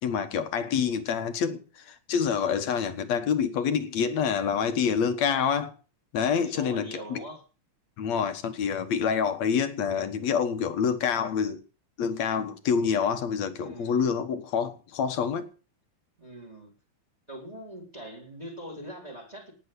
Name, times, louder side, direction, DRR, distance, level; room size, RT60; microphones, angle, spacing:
voice 1, 0.0-5.7 6.1-6.9 7.1-7.2 8.0-11.6 12.0-15.5, left 7 dB, 70° left, 2.6 m, -27 dB
voice 2, 6.3-7.4 13.5-14.0 16.2-16.7 17.3-19.5, equal, 10° right, 4.3 m, -42 dB
18.5 x 7.4 x 8.2 m
omnidirectional pair, 3.3 m